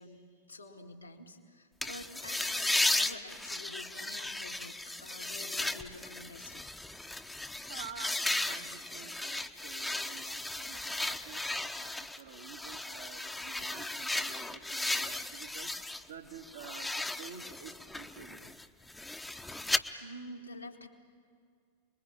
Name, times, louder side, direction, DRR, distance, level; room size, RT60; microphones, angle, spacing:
voice 1, 0.0-6.7 8.5-8.6 20.0-20.9, left 1 dB, 80° left, 1 dB, 2.4 m, -48 dB
sound 1, 1.8-16.0 16.4-19.8, left 2 dB, 5° left, 1.0 m, -35 dB
voice 2, 7.7-18.5, right 7 dB, 65° right, 4 dB, 1.8 m, -50 dB
29.5 x 21.5 x 8.9 m, 2.2 s
figure-of-eight pair, 90°, 0 cm